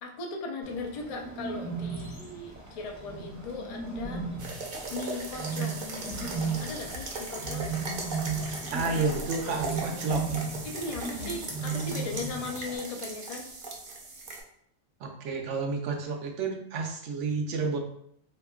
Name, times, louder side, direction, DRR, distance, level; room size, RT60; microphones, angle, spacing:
voice 1, 0.0-4.3 4.9-5.7 6.6-7.7 10.6-13.5, left 3 dB, 55° left, 2 dB, 0.4 m, -38 dB
Bird, 0.6-12.8, right 4 dB, 20° right, 0.6 m, -36 dB
sound 1, 4.4-14.4, right 3 dB, 55° right, 0.7 m, -38 dB
sound 2, 6.0-11.4, left 4 dB, 75° left, 1.0 m, -46 dB
voice 2, 8.7-10.3 15.0-17.8, right 4 dB, 80° right, 3 dB, 0.9 m, -30 dB
3.5 x 2.9 x 2.3 m, 0.70 s
omnidirectional pair, 1.2 m